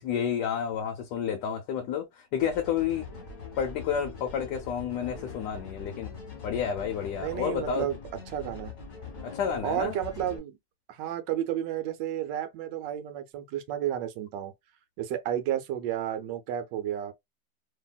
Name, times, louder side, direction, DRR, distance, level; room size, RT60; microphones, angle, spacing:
voice 1, 0.0-3.1 3.6-6.1 6.4-7.9 9.2-10.0, left 8 dB, 70° left, 1.2 m, -30 dB
sound 1, 2.4-10.4, left 5 dB, 30° left, 1.2 m, -43 dB
voice 2, 7.2-8.0 8.3-8.7 9.6-10.6 10.9-14.5 15.0-17.1, right 11 dB, 75° right, 1.3 m, -32 dB
2.8 x 2.7 x 2.3 m
omnidirectional pair, 2.0 m